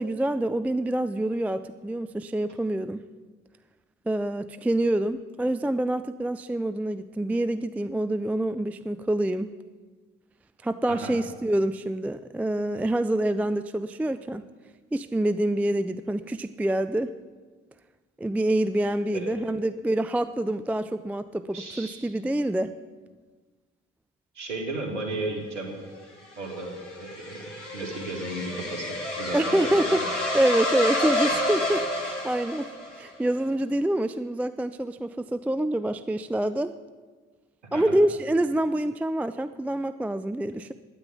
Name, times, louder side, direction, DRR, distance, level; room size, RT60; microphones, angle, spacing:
voice 1, 0.0-3.0 4.1-9.5 10.6-14.4 14.9-17.1 18.2-22.7 29.3-36.7 37.7-40.7, right 1 dB, 5° right, 12 dB, 0.4 m, -26 dB
voice 2, 19.1-19.5 21.5-22.1 24.4-25.8 26.4-29.9 37.7-38.0, right 2 dB, 80° right, 3 dB, 1.9 m, -35 dB
sound 1, 26.0-33.1, left 1 dB, 85° left, 1.4 m, -29 dB
9.7 x 9.2 x 9.4 m, 1.4 s
figure-of-eight pair, 45°, 35 cm